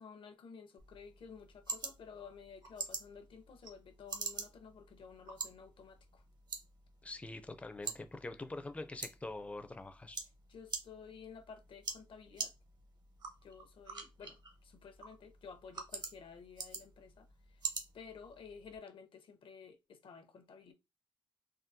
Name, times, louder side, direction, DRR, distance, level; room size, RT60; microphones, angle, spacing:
voice 1, 0.0-6.2 10.5-12.5 13.4-17.3 17.9-20.7, left 6 dB, 70° left, 0.7 m, -53 dB
sound 1, 0.8-18.8, right 5 dB, 50° right, 0.7 m, -47 dB
voice 2, 7.0-10.2, left 2 dB, 15° left, 0.4 m, -44 dB
3.6 x 2.3 x 2.6 m
wide cardioid pair, 135°, 9 cm